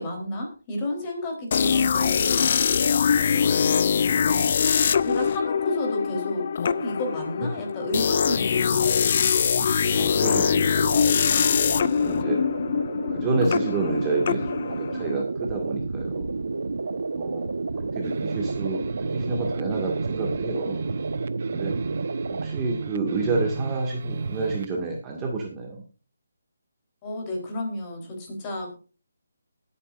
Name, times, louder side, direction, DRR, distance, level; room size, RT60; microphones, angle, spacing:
voice 1, 0.0-2.5 4.2-4.5 5.0-9.1 27.0-28.8, left 1 dB, 25° left, 2 dB, 3.7 m, -32 dB
sound 1, 1.5-15.2, left 7 dB, 45° left, 0.5 m, -23 dB
voice 2, 1.6-2.0 7.4-7.5 8.7-8.8 9.9-11.4 11.7-11.8 12.1-12.4 13.1-16.3 17.1-20.8 21.5-21.7 22.3-25.8, right 3 dB, 15° right, 0 dB, 2.0 m, -29 dB
sound 2, 9.3-22.5, right 3 dB, 70° right, 1.2 m, -31 dB
sound 3, 18.0-24.8, right 4 dB, 50° right, 0.9 m, -34 dB
20.5 x 8.6 x 2.5 m, 0.35 s
figure-of-eight pair, 160°, 0 cm